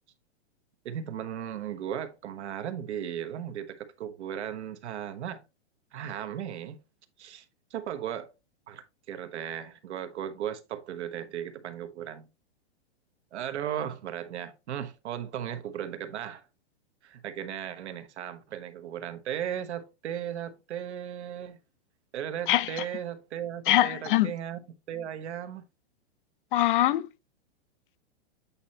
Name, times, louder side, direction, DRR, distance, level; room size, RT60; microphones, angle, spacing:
voice 1, 0.8-5.4 5.9-6.8 7.2-7.4 7.7-8.3 8.7-12.3 13.3-16.4 17.0-21.6 22.1-24.6 24.9-25.6, right 10 dB, 80° right, 1.2 m, -36 dB
voice 2, 22.5-22.8 23.7-24.3 26.5-27.1, left 14 dB, 50° left, 0.6 m, -23 dB
8.5 x 4.2 x 2.9 m
hypercardioid pair, 150°, 34 cm